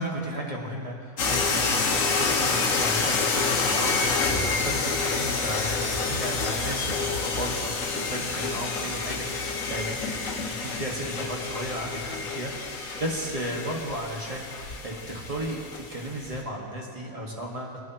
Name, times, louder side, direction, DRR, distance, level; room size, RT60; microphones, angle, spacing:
voice 1, 0.0-17.8, equal, 25° right, -2 dB, 1.5 m, -34 dB
sound 1, 1.2-16.4, left 4 dB, 65° left, 1.4 m, -28 dB
20.5 x 9.4 x 2.9 m, 2.4 s
omnidirectional pair, 1.6 m